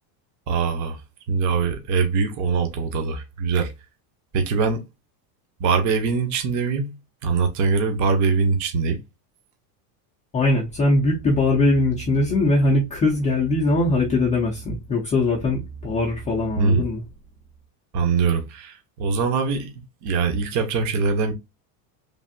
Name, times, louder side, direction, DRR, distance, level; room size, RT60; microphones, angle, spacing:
voice 1, 0.5-1.0 1.3-3.7 4.3-4.8 5.6-6.9 7.2-9.0 16.6-16.8 17.9-19.7 20.0-21.3, right 5 dB, 35° right, 0.7 m, -22 dB
voice 2, 10.3-17.0, left 2 dB, 15° left, 0.4 m, -21 dB
3.3 x 2.5 x 2.5 m
supercardioid pair, 140°, 49 cm